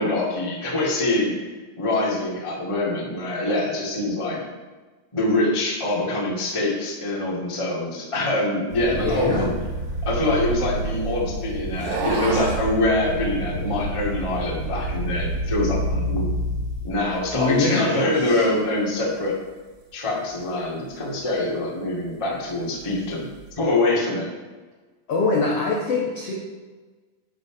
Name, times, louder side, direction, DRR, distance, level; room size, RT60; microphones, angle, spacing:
voice 1, 0.0-1.5 1.8-4.4 5.1-9.5 10.0-16.4 16.8-19.4 19.9-23.3 23.6-24.2, left 2 dB, 20° left, -4 dB, 0.7 m, -24 dB
sound 1, 8.7-17.5 18.2-18.6 19.2-19.3 22.8-23.5, right 1 dB, 55° right, 1.5 m, -29 dB
voice 2, 8.9-9.5 17.3-18.5 25.1-26.3, left 3 dB, 70° left, -3 dB, 1.4 m, -24 dB
sound 2, 9.5-10.9 11.7-12.7, right 4 dB, 70° right, 2.5 m, -30 dB
10.5 x 5.7 x 5.1 m, 1.3 s
omnidirectional pair, 4.7 m